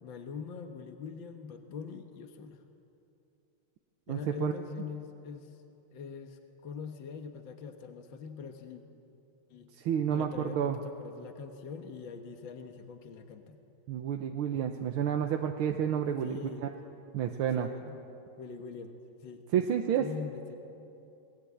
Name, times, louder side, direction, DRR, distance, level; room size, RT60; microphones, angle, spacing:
voice 1, 0.0-2.6 4.1-5.6 5.9-8.8 9.5-9.7 10.1-13.6 16.2-16.7 17.6-18.0 18.4-19.4 20.0-20.6, left 6 dB, 70° left, 5 dB, 2.0 m, -43 dB
voice 2, 4.1-4.5 9.8-10.8 13.9-16.7 17.1-17.7 19.5-20.1, right 9 dB, 85° right, 4 dB, 1.9 m, -30 dB
29.0 x 20.0 x 8.6 m, 2.8 s
omnidirectional pair, 2.3 m